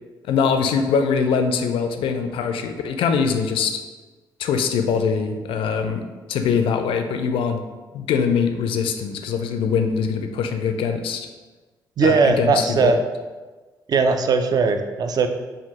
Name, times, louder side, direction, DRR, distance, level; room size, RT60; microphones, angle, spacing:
voice 1, 0.3-3.8 4.4-7.6 7.9-11.3 12.0-13.0, left 6 dB, 55° left, 6 dB, 0.4 m, -22 dB
voice 2, 12.0-13.0 13.9-15.3, right 4 dB, 40° right, 7 dB, 0.4 m, -19 dB
5.2 x 2.3 x 3.0 m, 1.3 s
figure-of-eight pair, 40°, 11 cm